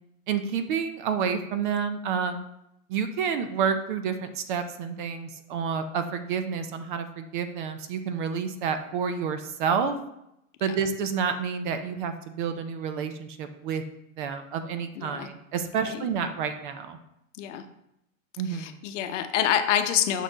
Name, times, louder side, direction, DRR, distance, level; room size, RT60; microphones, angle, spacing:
voice 1, 0.3-2.5 2.9-10.0 10.6-13.8 14.2-17.0 18.4-18.8, right 6 dB, 40° right, 9 dB, 0.5 m, -29 dB
voice 2, 14.9-15.3 15.7-16.1 17.4-17.6 18.4-20.2, left 10 dB, 60° left, 8 dB, 0.8 m, -27 dB
6.3 x 4.2 x 3.9 m, 0.82 s
supercardioid pair, 150°, 41 cm